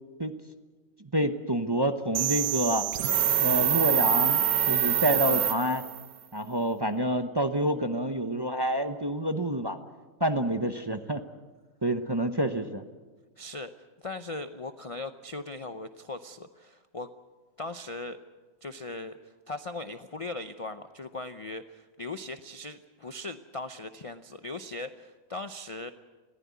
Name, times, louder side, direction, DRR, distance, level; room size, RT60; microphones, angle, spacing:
voice 1, 1.1-2.9 3.4-5.8 6.3-9.8 10.2-11.2 11.8-12.8, right 1 dB, 20° right, 7 dB, 0.7 m, -28 dB
sound 1, 2.1-6.0, right 9 dB, 75° right, 1.4 m, -25 dB
voice 2, 13.4-13.7 14.0-17.1 17.6-18.2 18.6-25.9, left 2 dB, 40° left, 10 dB, 0.5 m, -39 dB
20.5 x 15.0 x 9.5 m, 1.3 s
omnidirectional pair, 1.5 m